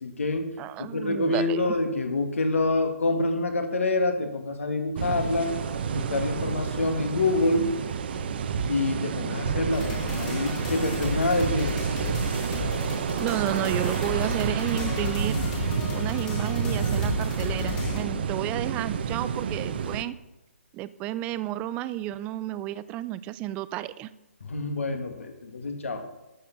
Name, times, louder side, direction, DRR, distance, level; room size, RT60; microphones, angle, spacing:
voice 1, 0.0-0.5 0.8-5.5 5.9-7.7 8.7-11.7 24.4-26.1, left 2 dB, 70° left, 5 dB, 2.1 m, -26 dB
voice 2, 0.6-1.8 13.1-15.4 15.9-20.1 20.7-24.1, right 14 dB, 15° right, 16 dB, 0.3 m, -32 dB
sound 1, 5.0-20.0, right 6 dB, 45° right, 0.9 m, -29 dB
sound 2, 9.7-18.0, left 4 dB, 30° left, 2.7 m, -34 dB
12.5 x 7.3 x 5.9 m, 0.96 s
figure-of-eight pair, 145°, 8 cm